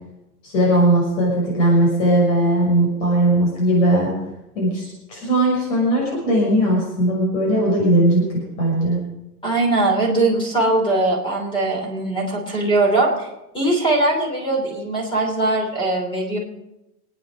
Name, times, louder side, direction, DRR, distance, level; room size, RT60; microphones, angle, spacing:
voice 1, 0.4-4.1 4.5-9.0, right 1 dB, 50° left, -3 dB, 6.4 m, -18 dB
voice 2, 9.4-13.3 13.5-16.4, right 2 dB, 10° left, 1 dB, 3.2 m, -20 dB
25.5 x 9.7 x 5.2 m, 0.90 s
supercardioid pair, 175°, 46 cm